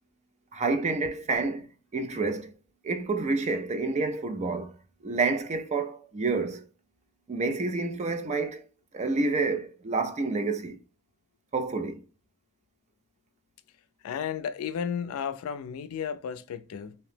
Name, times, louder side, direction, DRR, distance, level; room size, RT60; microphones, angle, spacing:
voice 1, 0.5-1.7 1.9-2.5 2.8-4.7 5.0-6.6 7.3-8.6 8.9-10.8 11.5-12.0, right 3 dB, 30° right, 0.4 m, -28 dB
voice 2, 14.0-17.0, left 7 dB, 75° left, 0.3 m, -33 dB
2.8 x 2.0 x 3.1 m
head